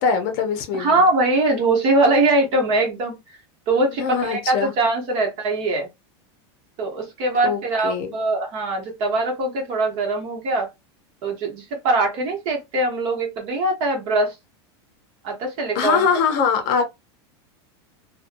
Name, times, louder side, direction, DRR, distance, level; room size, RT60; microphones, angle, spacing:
voice 1, 0.0-1.0 3.9-4.7 7.4-8.2 15.7-16.8, left 6 dB, 45° left, 0.7 m, -22 dB
voice 2, 0.7-3.1 3.7-5.9 6.8-10.7 11.2-14.3 15.2-16.1, right 2 dB, 40° right, 1.0 m, -22 dB
2.6 x 2.2 x 2.5 m
supercardioid pair, 165°, 14 cm